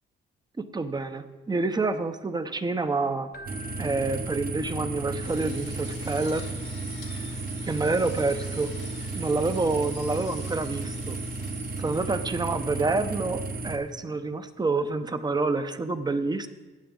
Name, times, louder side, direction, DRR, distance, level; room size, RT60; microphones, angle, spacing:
voice 1, 0.6-3.3 3.8-6.5 7.6-8.7 9.1-11.2 11.8-16.5, right 3 dB, 20° right, 10 dB, 0.8 m, -28 dB
Keyboard (musical), 3.3-5.2, left 2 dB, 50° left, 0.8 m, -48 dB
sound 1, 3.5-13.8, right 3 dB, 45° right, 1.4 m, -34 dB
Drill, 5.1-12.9, left 7 dB, 85° left, 1.6 m, -50 dB
16.0 x 9.4 x 3.8 m, 1.2 s
cardioid pair, 90°, 20 cm